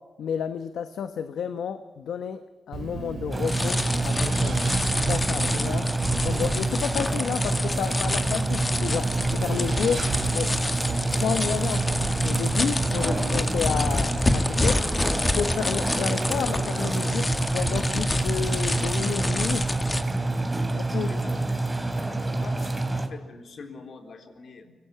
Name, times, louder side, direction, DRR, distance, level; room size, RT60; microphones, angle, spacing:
voice 1, 0.2-2.4 2.7-4.8 5.1-5.9 6.2-10.0 10.3-10.5 11.1-14.8 15.3-19.7 20.7-21.1, left 7 dB, 85° left, 10 dB, 1.1 m, -31 dB
Wind, 2.7-13.4, right 5 dB, 70° right, 2.8 m, -34 dB
sound 1, 3.3-23.1, right 2 dB, 20° right, 3.0 m, -27 dB
sound 2, 3.5-20.0, left 2 dB, 25° left, 2.2 m, -29 dB
voice 2, 20.9-21.5 21.9-24.7, left 4 dB, 65° left, 5 dB, 3.8 m, -44 dB
25.5 x 18.5 x 8.7 m, 1.3 s
cardioid pair, 80°, 0 cm